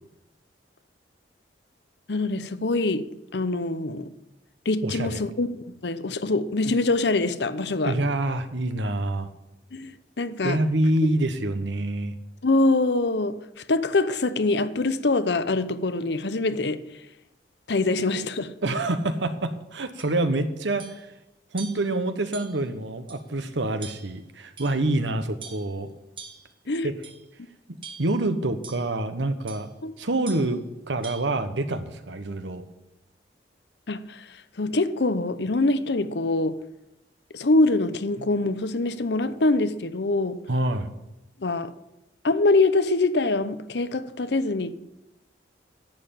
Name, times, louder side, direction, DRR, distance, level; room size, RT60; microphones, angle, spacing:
voice 1, 2.1-3.0 3.3-4.1 4.7-7.9 9.7-10.6 11.0-11.1 12.4-13.4 13.7-16.8 17.7-18.5 26.7-26.9 29.8-29.9 33.9-34.2 34.6-36.5 37.3-40.4 41.4-41.7 42.2-44.7, left 2 dB, 70° left, 0.8 m, -24 dB
voice 2, 4.8-5.2 7.8-9.3 10.4-12.1 18.6-20.9 21.5-25.9 26.8-27.0 27.7-29.7 30.0-32.7 40.5-40.9, right 2 dB, 85° right, 1.2 m, -26 dB
sound 1, 20.0-20.1 20.8-21.1 21.6-21.9 22.3-22.7 23.1-23.2 23.8-24.2 24.6-25.0 25.4-25.7 26.2-26.5 27.0-27.3 27.8-28.2 28.6-28.9 29.5-29.7 30.3-30.5 31.0-31.3, right 6 dB, 30° right, 1.7 m, -43 dB
11.0 x 7.9 x 8.9 m
head